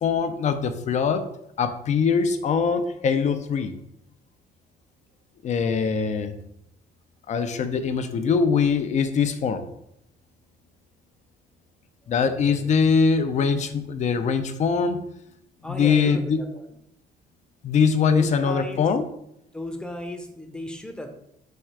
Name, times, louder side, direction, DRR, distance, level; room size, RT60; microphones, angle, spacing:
voice 1, 0.0-1.2 1.6-3.7 5.4-6.3 7.3-9.6 12.1-15.0 15.7-16.4 17.6-19.1, left 6 dB, 45° left, 10 dB, 0.5 m, -22 dB
voice 2, 5.6-5.9 12.0-12.8 15.6-16.7 18.1-18.8 19.5-21.1, left 1 dB, 5° left, 5 dB, 0.7 m, -35 dB
4.2 x 2.3 x 4.7 m, 0.78 s
cardioid pair, 110°, 17 cm